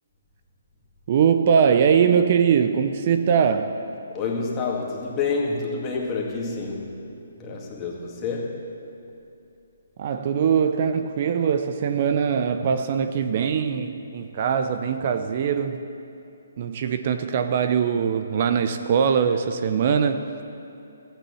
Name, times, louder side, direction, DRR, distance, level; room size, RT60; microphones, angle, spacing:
voice 1, 1.1-3.8 10.0-15.8 16.6-20.2, right 7 dB, 45° right, 0.6 m, -22 dB
voice 2, 4.1-7.0 7.4-8.7, left 4 dB, 20° left, 2.1 m, -28 dB
14.0 x 9.1 x 7.0 m
figure-of-eight pair, 140°, 0 cm